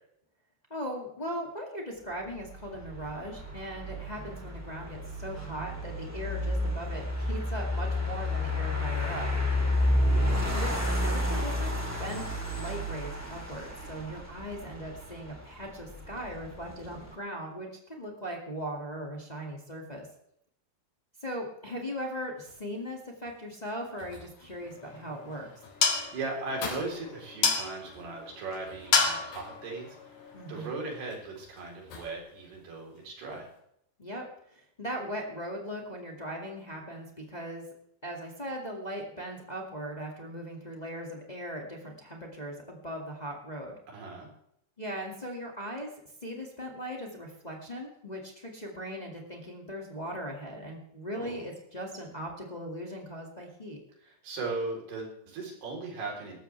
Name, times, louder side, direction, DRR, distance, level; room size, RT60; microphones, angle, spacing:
voice 1, 0.7-9.3 10.5-11.7 12.0-12.3 12.5-20.1 21.2-25.5 30.3-30.7 34.0-37.6 38.0-43.7 44.8-45.9 46.2-53.8, equal, 20° left, 0 dB, 1.0 m, -39 dB
sound 1, 2.3-17.1, left 1 dB, 5° right, 1.9 m, -31 dB
voice 2, 10.1-10.4 25.8-33.5 43.9-44.3 51.1-51.4 54.0-56.4, right 3 dB, 70° right, -1 dB, 6.0 m, -38 dB
sound 2, 22.4-33.6, left 3 dB, 75° left, 5.5 m, -48 dB
sound 3, 24.6-31.1, left 5 dB, 45° left, 1.9 m, -32 dB
19.0 x 14.5 x 3.4 m, 0.73 s
omnidirectional pair, 4.9 m